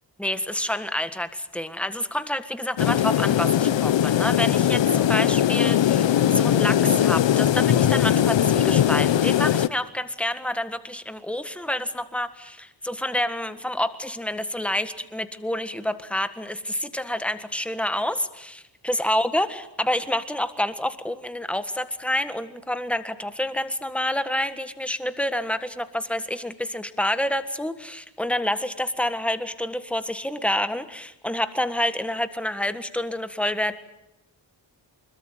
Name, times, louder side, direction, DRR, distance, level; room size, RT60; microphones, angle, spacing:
voice 1, 0.2-33.7, left 1 dB, 5° left, 10 dB, 1.5 m, -28 dB
sound 1, 2.8-9.7, left 10 dB, 85° left, 0.9 m, -20 dB
25.5 x 22.0 x 9.1 m, 0.89 s
wide cardioid pair, 150°, 43 cm